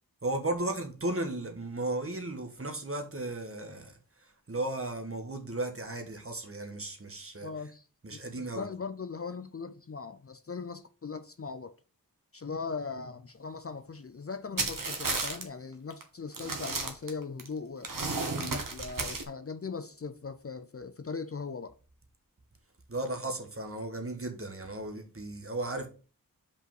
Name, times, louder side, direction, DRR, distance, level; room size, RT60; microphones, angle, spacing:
voice 1, 0.2-7.5 8.0-8.7 22.9-25.9, right 2 dB, 40° right, 1.6 m, -35 dB
voice 2, 7.4-7.8 8.1-11.7 12.3-17.9 18.4-21.7, left 5 dB, 40° left, 0.6 m, -39 dB
sound 1, 14.6-15.4 15.9-16.0 16.3-17.5 17.8-19.2, right 3 dB, 65° right, 1.5 m, -33 dB
5.5 x 5.0 x 5.9 m
wide cardioid pair, 60°, 36 cm